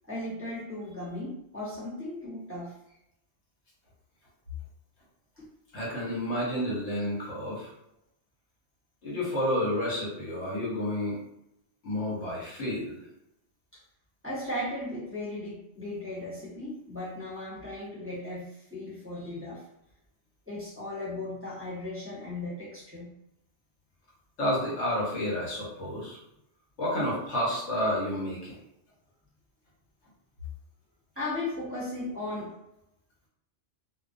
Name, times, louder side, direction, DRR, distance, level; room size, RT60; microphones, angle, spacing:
voice 1, 0.1-2.7 5.4-5.5 13.7-13.8 14.2-19.6 20.5-23.1 31.2-32.5, left 1 dB, 10° right, -10 dB, 0.9 m, -36 dB
voice 2, 5.7-7.7 9.0-11.2 11.8-13.0 24.4-26.2 26.8-28.5, left 1 dB, 70° left, -5 dB, 1.2 m, -30 dB
2.3 x 2.2 x 2.5 m, 0.80 s
omnidirectional pair, 1.2 m